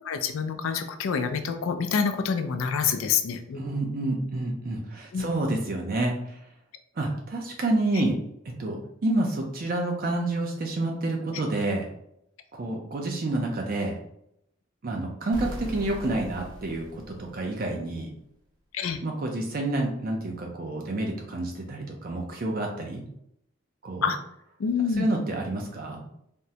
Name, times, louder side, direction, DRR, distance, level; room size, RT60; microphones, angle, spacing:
voice 1, 0.0-3.9 5.1-5.3 18.7-19.0 24.0-24.2 24.6-25.1, left 6 dB, 85° left, 8 dB, 0.4 m, -27 dB
voice 2, 3.6-6.4 7.0-8.2 8.6-8.8 9.0-11.9 12.5-13.9 14.8-18.1 19.0-23.0 23.8-24.0 25.0-26.0, right 2 dB, 45° right, 1 dB, 0.4 m, -28 dB
sound 1, 15.3-18.0, equal, 20° right, 0.8 m, -39 dB
3.5 x 2.0 x 2.7 m, 0.75 s
head